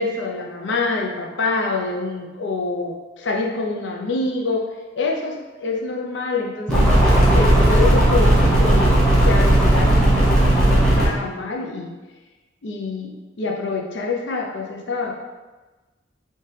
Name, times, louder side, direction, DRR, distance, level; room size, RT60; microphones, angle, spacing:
voice 1, 0.0-4.6 5.0-6.9 7.3-11.9 12.6-15.1, left 3 dB, 70° left, 1 dB, 0.6 m, -26 dB
sound 1, 6.7-11.1, right 1 dB, 5° left, 0.9 m, -15 dB
3.3 x 2.8 x 3.2 m, 1.2 s
head